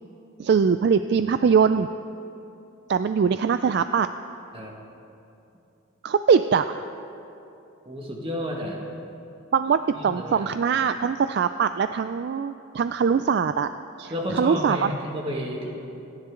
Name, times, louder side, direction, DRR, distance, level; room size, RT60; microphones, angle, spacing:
voice 1, 0.4-1.9 2.9-4.1 6.0-6.9 9.5-13.7 14.0-14.9, right 6 dB, 50° right, 10 dB, 0.3 m, -22 dB
voice 2, 7.9-8.8 9.9-10.5 14.1-15.7, equal, 25° right, -1 dB, 1.9 m, -31 dB
27.0 x 10.5 x 3.8 m, 2.8 s
head